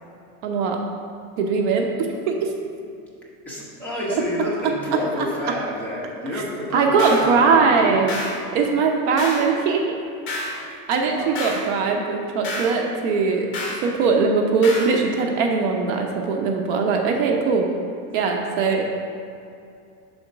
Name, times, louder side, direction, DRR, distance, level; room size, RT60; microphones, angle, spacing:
voice 1, 0.4-0.8 1.4-2.5 6.3-6.4 6.7-8.2 8.5-9.8 10.9-13.5 13.8-17.7 18.1-19.0, right 4 dB, 55° right, 2 dB, 0.7 m, -20 dB
voice 2, 3.4-8.2 8.5-8.6 11.1-11.6, left 1 dB, 5° left, -7 dB, 0.9 m, -29 dB
sound 1, 7.0-7.3 8.1-8.4 9.2-9.5 10.3-10.6 11.3-11.7 12.4-12.8 13.5-13.8 14.6-14.9, left 2 dB, 30° left, 1.3 m, -29 dB
5.6 x 3.9 x 5.6 m, 2.5 s
supercardioid pair, 155°, 42 cm